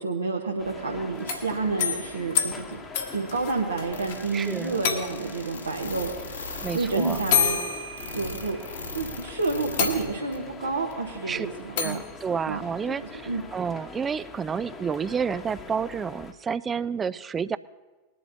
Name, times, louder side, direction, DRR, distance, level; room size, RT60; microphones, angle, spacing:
voice 1, 0.0-2.8 3.1-6.1 6.7-7.6 8.1-8.6 8.9-12.0 12.5-12.6 12.9-13.0 13.3-13.4, right 3 dB, 75° right, -1 dB, 1.1 m, -29 dB
sound 1, 0.6-16.3, left 4 dB, 20° left, 1.1 m, -44 dB
sound 2, 1.1-4.2 4.4-4.5 4.8-5.4 6.5-6.6 7.3-8.7 9.2-9.3 9.8-10.5 11.8-12.1, left 8 dB, 55° left, 1.4 m, -28 dB
sound 3, 3.9-10.0 10.3-10.4 10.9-11.0, left 3 dB, 70° left, 2.2 m, -37 dB
voice 2, 4.3-4.8 6.6-7.2 11.3-11.5 11.8-13.2 13.5-17.6, right 6 dB, 20° right, 18 dB, 0.3 m, -30 dB
21.0 x 11.0 x 2.8 m, 1.3 s
figure-of-eight pair, 90°, 0 cm